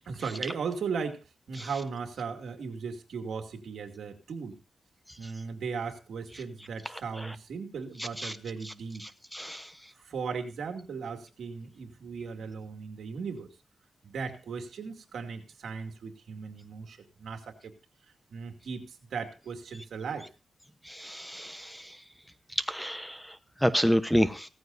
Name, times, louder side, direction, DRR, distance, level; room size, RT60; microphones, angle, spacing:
voice 1, 0.1-4.6 5.2-9.1 10.0-13.5 14.0-17.7 18.3-20.3, right 5 dB, 80° right, 4 dB, 2.5 m, -37 dB
voice 2, 9.3-9.6 21.0-21.7 22.7-23.2 23.6-24.5, equal, ahead, 11 dB, 1.0 m, -27 dB
17.0 x 14.5 x 2.7 m, 0.31 s
cardioid pair, 85°, 0 cm